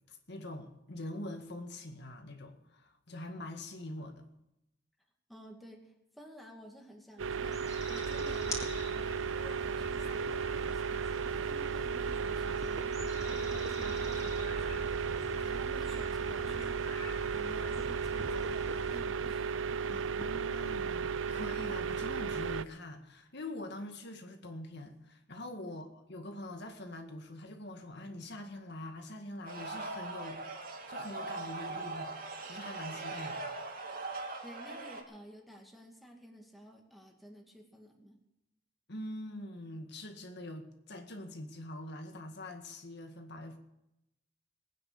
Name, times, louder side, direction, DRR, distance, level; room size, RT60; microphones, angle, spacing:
voice 1, 0.1-4.2 19.9-30.4 30.9-32.2 32.5-33.4 38.9-43.6, left 1 dB, 60° left, 5 dB, 1.9 m, -44 dB
voice 2, 5.3-12.9 13.2-16.8 17.3-19.6 19.8-20.1 21.3-21.5 25.6-25.8 34.4-38.2, equal, ahead, 0 dB, 2.5 m, -53 dB
sound 1, 7.2-22.6, right 5 dB, 70° right, 0.6 m, -34 dB
sound 2, 7.4-19.0, left 1 dB, 15° left, 4.1 m, -46 dB
sound 3, 29.5-35.0, right 3 dB, 45° right, 2.5 m, -40 dB
19.5 x 9.9 x 7.1 m, 0.86 s
head